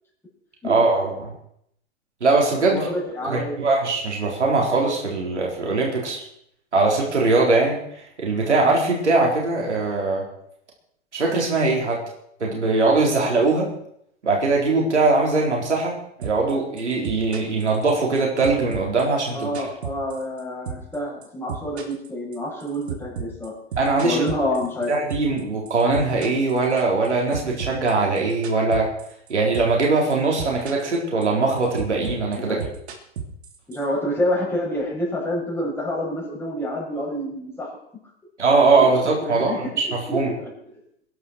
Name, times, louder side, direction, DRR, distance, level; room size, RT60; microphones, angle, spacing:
voice 1, 0.6-1.3 2.2-2.9 3.2-6.3 6.7-7.8 8.2-10.2 11.1-12.0 12.4-13.7 14.2-19.5 23.8-24.2 24.9-28.9 29.3-32.6 38.4-39.7 40.1-40.3, right 3 dB, 90° right, -1 dB, 4.2 m, -21 dB
voice 2, 2.7-3.7 19.3-23.5 24.0-24.9 32.5-32.6 33.7-37.7 38.8-38.9 39.2-40.5, equal, 5° left, -4 dB, 7.2 m, -28 dB
sound 1, 16.2-16.5 16.8-18.2 18.4-20.4 20.7-21.0 21.2-25.4 25.7-27.1 27.3-29.3 29.5-29.8 30.1-31.0 31.2-33.8, right 7 dB, 70° right, 3.1 m, -33 dB
22.0 x 11.0 x 4.6 m, 0.70 s
hypercardioid pair, 110°, 34 cm